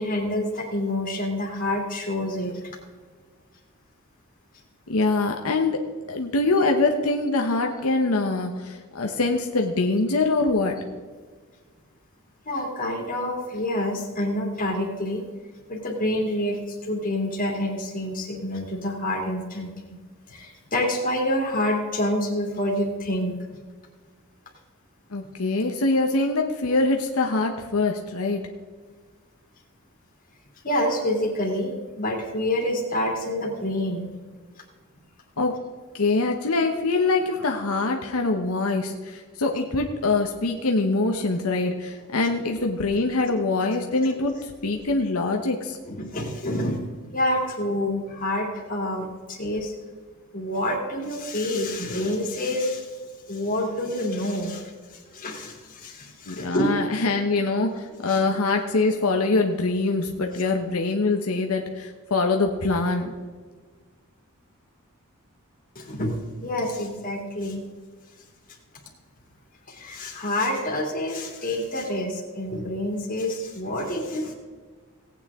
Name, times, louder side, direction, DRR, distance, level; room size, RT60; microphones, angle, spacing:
voice 1, 0.0-2.7 12.4-15.2 15.7-20.0 20.3-23.4 30.6-34.1 45.9-46.8 47.1-49.7 50.3-52.9 53.3-56.8 58.1-58.2 65.7-67.6 69.7-74.3, left 1 dB, 40° left, 0 dB, 2.7 m, -27 dB
voice 2, 4.9-5.8 6.1-10.7 25.1-28.4 35.4-35.5 35.9-45.8 56.3-63.1, left 3 dB, 85° left, 3 dB, 1.0 m, -24 dB
18.0 x 9.0 x 3.6 m, 1.5 s
head